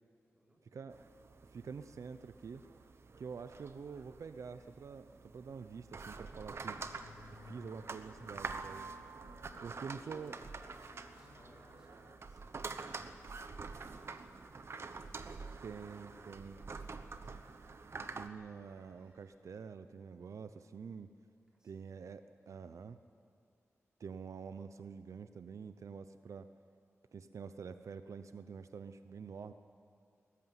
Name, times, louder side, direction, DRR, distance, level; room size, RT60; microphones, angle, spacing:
voice 1, 0.3-0.9 9.7-17.3 21.5-22.1, right 1 dB, 10° right, -3 dB, 4.4 m, -65 dB
sound 1, 0.9-18.3, right 4 dB, 55° right, 1.0 m, -47 dB
voice 2, 1.5-2.6 3.2-6.8 7.4-8.9 9.6-10.4 15.6-16.6 18.2-21.1 21.6-23.0 24.0-26.5 27.1-29.5, right 6 dB, 75° right, 11 dB, 0.6 m, -47 dB
sound 2, 6.7-12.2, left 5 dB, 80° left, 0.5 m, -60 dB
sound 3, 12.6-19.3, right 1 dB, 40° right, 7.7 m, -74 dB
20.0 x 14.5 x 9.4 m, 2.3 s
wide cardioid pair, 130°, 5 cm